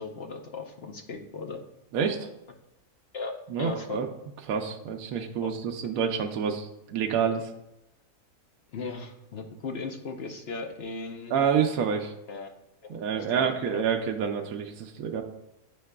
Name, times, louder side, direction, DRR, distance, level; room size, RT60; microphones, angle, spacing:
voice 1, 0.0-1.6 3.1-3.3 3.6-4.0 5.4-5.5 8.7-11.3 12.3-12.5 12.8-13.9, left 4 dB, 55° left, 3 dB, 0.7 m, -37 dB
voice 2, 1.9-2.3 3.5-4.1 4.5-7.5 11.3-12.1 12.9-15.2, right 7 dB, 75° right, 2 dB, 1.0 m, -28 dB
9.9 x 4.7 x 2.2 m, 0.90 s
omnidirectional pair, 1.6 m